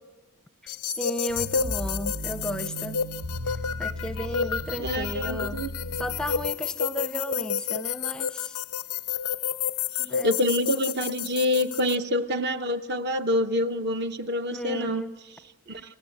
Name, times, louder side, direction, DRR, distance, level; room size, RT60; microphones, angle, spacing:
voice 1, 0.6-3.0 3.8-5.7 6.0-8.6 10.0-10.3 14.5-15.2 15.7-15.8, equal, 5° left, 10 dB, 0.6 m, -34 dB
sound 1, 0.7-12.0, left 7 dB, 85° left, 0.6 m, -31 dB
sound 2, 1.3-6.5, equal, 90° right, 1.4 m, -36 dB
voice 2, 4.8-5.7 10.2-15.1 15.7-15.8, left 1 dB, 50° right, 9 dB, 1.0 m, -26 dB
29.0 x 15.0 x 7.8 m, 1.2 s
head